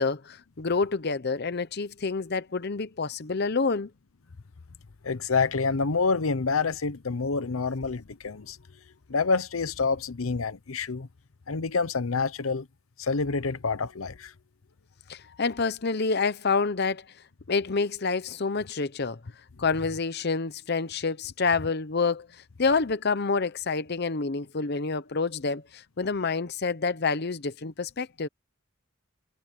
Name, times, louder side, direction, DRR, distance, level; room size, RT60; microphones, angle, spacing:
voice 1, 0.0-3.9 15.1-17.1 17.5-19.2 19.6-28.3, left 4 dB, 50° left, 0.8 m, -28 dB
voice 2, 5.0-8.6 9.1-11.1 11.5-12.7 13.0-14.3, left 4 dB, 85° left, 0.8 m, -27 dB
head